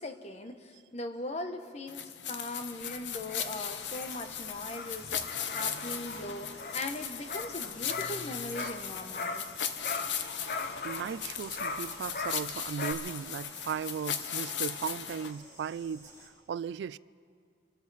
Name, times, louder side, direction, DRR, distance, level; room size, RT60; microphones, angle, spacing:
voice 1, 0.0-9.4, left 2 dB, 40° left, 1.0 m, -40 dB
sound 1, 1.9-15.3, left 8 dB, 90° left, 0.9 m, -38 dB
sound 2, 2.5-9.6 9.8-12.9, left 4 dB, 55° left, 0.7 m, -40 dB
sound 3, 3.8-16.3, equal, 20° left, 3.4 m, -55 dB
voice 2, 10.8-16.1 16.5-17.0, right 7 dB, 75° right, 0.3 m, -37 dB
27.5 x 13.0 x 4.1 m
head